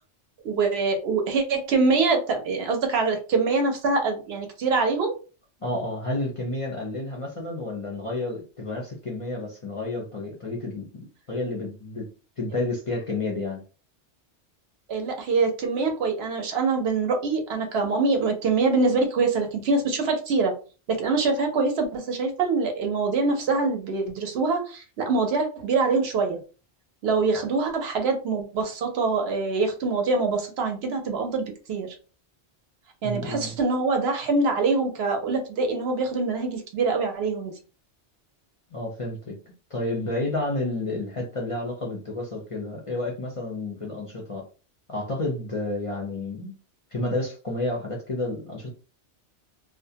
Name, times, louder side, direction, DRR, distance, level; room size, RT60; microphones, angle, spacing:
voice 1, 0.4-5.1 14.9-20.5 20.9-26.4 27.0-31.9 33.0-37.5, right 4 dB, 70° right, 4 dB, 0.8 m, -24 dB
voice 2, 5.6-12.1 12.4-13.6 33.0-33.5 38.7-39.4 39.7-44.4 44.9-46.6 46.9-48.7, left 2 dB, 40° left, -2 dB, 0.5 m, -30 dB
2.4 x 2.1 x 2.7 m, 0.35 s
omnidirectional pair, 1.2 m